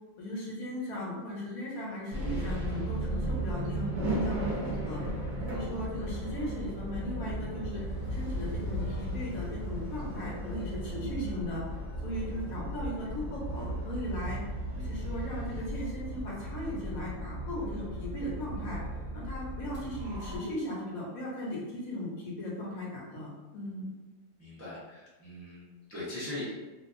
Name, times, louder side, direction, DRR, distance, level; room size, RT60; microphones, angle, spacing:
voice 1, 0.2-5.0 5.4-7.8 8.1-11.6 12.0-14.4 14.8-23.9, left 1 dB, 70° left, -4 dB, 1.2 m, -37 dB
sound 1, 2.1-20.4, right 1 dB, 40° right, 0.7 m, -35 dB
voice 2, 24.4-26.5, left 1 dB, 20° right, -10 dB, 0.3 m, -41 dB
2.7 x 2.3 x 2.5 m, 1.1 s
omnidirectional pair, 1.6 m